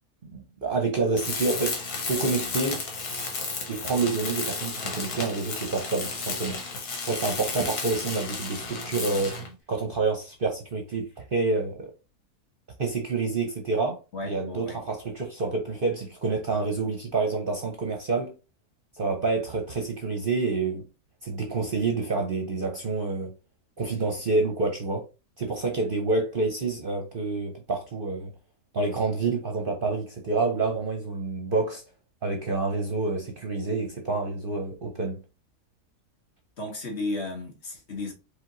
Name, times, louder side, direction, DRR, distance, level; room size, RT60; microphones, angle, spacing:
voice 1, 0.2-2.8 3.7-6.6 7.0-9.3 9.7-11.9 12.8-14.0 14.2-18.3 18.9-20.8 21.2-23.3 23.8-25.0 25.4-28.3 28.7-31.8 32.2-35.2, right 3 dB, 45° right, 0.8 m, -28 dB
Tools, 1.2-9.5, left 4 dB, 80° left, 1.7 m, -33 dB
voice 2, 14.1-14.8 36.6-38.1, left 2 dB, 45° left, 1.4 m, -34 dB
5.1 x 2.6 x 3.8 m
omnidirectional pair, 1.6 m